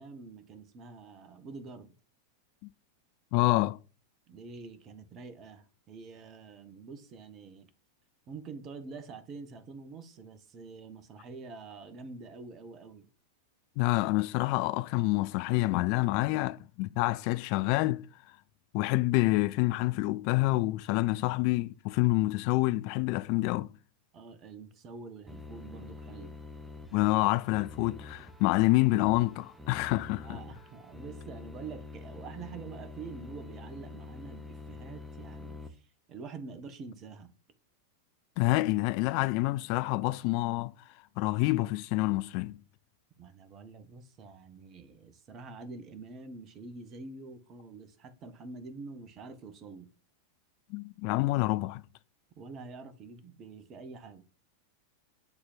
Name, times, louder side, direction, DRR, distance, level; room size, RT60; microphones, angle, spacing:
voice 1, 0.0-1.9 4.3-7.7 8.3-13.1 24.1-26.4 30.2-37.3 43.2-49.9 52.4-54.2, right 4 dB, 30° right, 1.7 m, -46 dB
voice 2, 3.3-3.8 13.8-18.1 18.7-23.7 26.9-30.4 38.4-40.7 41.2-42.6 50.7-51.8, left 20 dB, 45° left, 0.5 m, -27 dB
sound 1, 25.3-35.7, left 3 dB, 5° right, 1.6 m, -46 dB
10.5 x 4.4 x 7.5 m
figure-of-eight pair, 90°, 0 cm